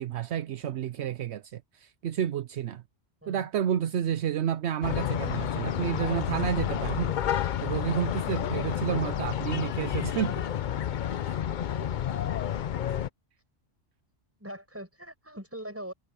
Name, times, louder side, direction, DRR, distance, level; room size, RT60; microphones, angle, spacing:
voice 1, 0.0-2.8 3.3-7.1 7.6-10.3 11.3-11.4, right 9 dB, 75° right, 0.9 m, -30 dB
sound 1, 4.8-13.1, left 10 dB, 55° left, 0.6 m, -30 dB
voice 2, 14.4-15.9, right 1 dB, 10° right, 5.7 m, -42 dB
omnidirectional pair, 1.2 m